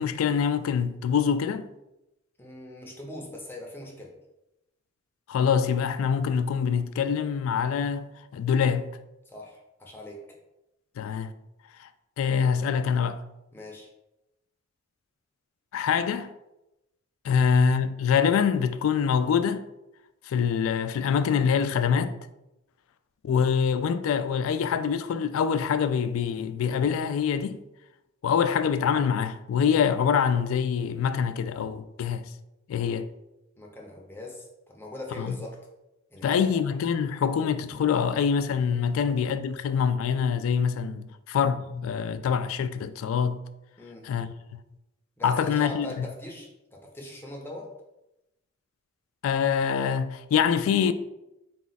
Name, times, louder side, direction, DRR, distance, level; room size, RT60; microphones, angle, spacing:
voice 1, 0.0-1.7 5.3-8.9 11.0-11.3 11.8-11.9 12.2-13.2 15.7-16.3 17.2-19.7 20.3-22.2 23.2-27.6 28.2-32.3 32.7-33.1 35.2-35.4 36.2-43.4 44.0-44.6 45.2-46.1 49.2-50.9, left 7 dB, 85° left, 0.3 m, -25 dB
voice 2, 2.4-4.1 9.3-10.4 13.5-13.9 33.6-35.6 36.1-36.6 43.8-44.1 45.2-47.7, left 1 dB, 10° left, 0.7 m, -41 dB
4.1 x 2.4 x 3.9 m
head